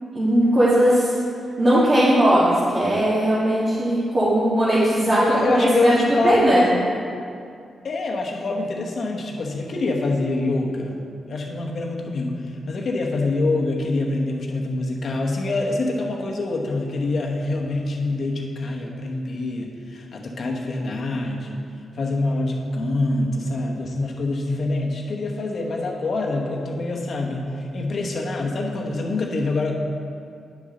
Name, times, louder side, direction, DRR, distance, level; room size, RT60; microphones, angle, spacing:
voice 1, 0.0-1.2 1.6-5.9 6.2-6.6, right 1 dB, 40° right, -11 dB, 2.0 m, -18 dB
voice 2, 5.1-6.7 7.8-11.0 11.3-21.6 21.9-29.7, left 2 dB, 60° left, 0 dB, 1.1 m, -25 dB
9.4 x 6.5 x 3.9 m, 2.4 s
cardioid pair, 85°, 0 cm